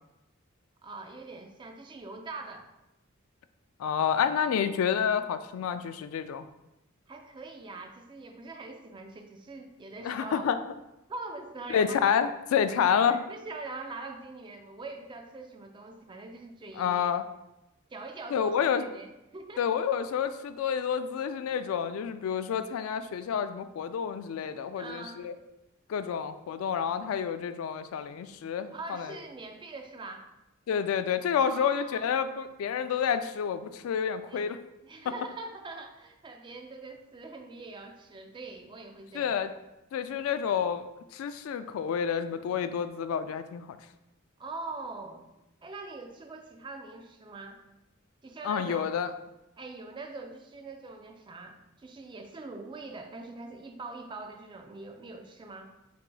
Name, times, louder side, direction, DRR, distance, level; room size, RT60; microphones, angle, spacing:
voice 1, 0.8-2.7 7.1-10.4 11.1-12.4 12.8-17.1 17.9-19.6 24.8-25.3 28.7-30.3 31.4-32.1 34.3-34.5 34.8-39.4 44.4-45.3 45.6-47.6 48.2-48.9 49.6-55.7, right 3 dB, 25° right, 4 dB, 0.4 m, -43 dB
voice 2, 3.8-6.4 10.0-10.6 11.7-13.2 16.8-17.2 18.3-18.8 19.6-25.3 25.9-29.2 30.7-34.6 39.1-39.5 39.9-40.9 41.1-43.8 48.4-49.1, left 7 dB, 85° left, 14 dB, 0.3 m, -29 dB
4.5 x 3.8 x 2.3 m, 0.92 s
head